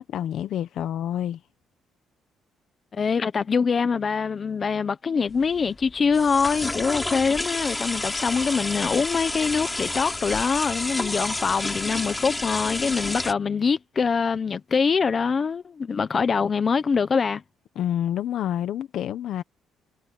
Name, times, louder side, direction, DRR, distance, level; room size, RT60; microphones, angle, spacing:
voice 1, 0.0-1.4 17.7-19.4, left 11 dB, 65° left, 1.3 m, -28 dB
voice 2, 2.9-17.4, left 5 dB, 30° left, 1.0 m, -24 dB
sound 1, 5.3-13.3, left 2 dB, 10° left, 4.6 m, -30 dB
cardioid pair, 135°, 0 cm